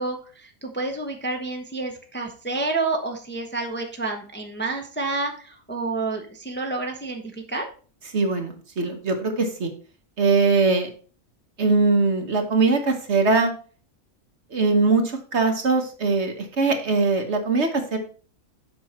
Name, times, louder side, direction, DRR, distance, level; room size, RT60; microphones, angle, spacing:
voice 1, 0.0-7.2 7.5-7.7, right 3 dB, 10° left, 3 dB, 0.8 m, -29 dB
voice 2, 8.1-9.7 10.2-10.9 11.6-13.5 14.5-18.0, right 3 dB, 55° right, 4 dB, 1.5 m, -21 dB
7.7 x 5.5 x 4.3 m, 0.40 s
omnidirectional pair, 1.4 m